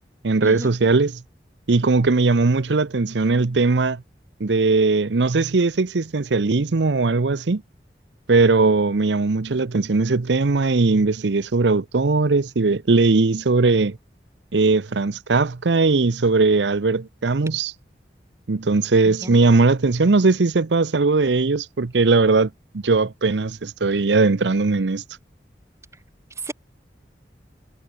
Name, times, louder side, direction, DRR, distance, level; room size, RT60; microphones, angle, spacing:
voice 1, 0.2-1.2 1.7-4.0 4.4-7.6 8.3-14.0 14.5-17.7 18.5-22.5 22.8-25.0, right 3 dB, 90° right, 0.7 m, -19 dB
voice 2, 19.0-19.5 26.4-26.5, right 1 dB, 15° right, 4.5 m, -33 dB
head